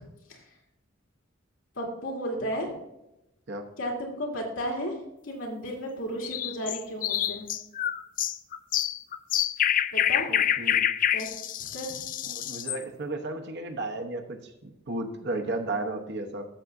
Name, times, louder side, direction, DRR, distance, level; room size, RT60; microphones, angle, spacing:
voice 1, 1.8-2.7 3.8-4.9 5.3-7.5 9.9-10.3 11.1-11.3 11.7-12.0, equal, 90° left, -1 dB, 2.6 m, -33 dB
sound 1, 6.2-12.8, left 10 dB, 45° left, 0.3 m, -27 dB
voice 2, 10.3-10.9 12.2-16.5, right 2 dB, 60° right, 5 dB, 1.0 m, -34 dB
13.5 x 7.0 x 2.6 m, 0.89 s
head